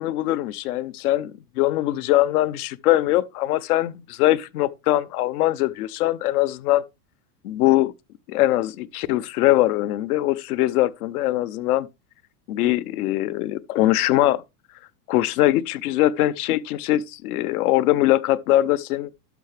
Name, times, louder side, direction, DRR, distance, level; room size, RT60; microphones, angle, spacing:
voice 1, 0.0-6.8 7.4-7.9 8.3-11.9 12.5-14.4 15.1-19.1, left 15 dB, 65° left, 0.8 m, -22 dB
12.0 x 5.8 x 3.4 m
supercardioid pair, 160°, 48 cm